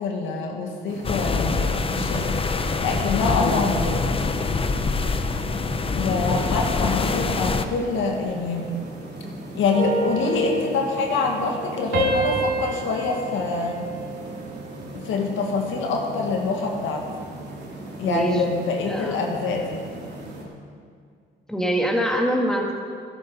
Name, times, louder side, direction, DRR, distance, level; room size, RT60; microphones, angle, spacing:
voice 1, 0.0-2.3 2.8-4.1 5.9-8.8 9.5-13.8 14.9-17.0 18.0-19.9, left 4 dB, 80° left, 1 dB, 1.8 m, -25 dB
sound 1, 0.9-20.4, right 1 dB, 60° right, 2.9 m, -38 dB
sound 2, 1.0-7.7, left 4 dB, 30° left, 0.7 m, -25 dB
voice 2, 3.3-3.7 18.0-18.4 18.8-19.2 21.5-22.8, equal, 5° left, 0 dB, 1.9 m, -24 dB
sound 3, 9.7-11.6 11.9-14.5 15.0-15.3, right 2 dB, 75° right, 3.2 m, -28 dB
12.0 x 11.0 x 5.5 m, 2.2 s
cardioid pair, 90°, 20 cm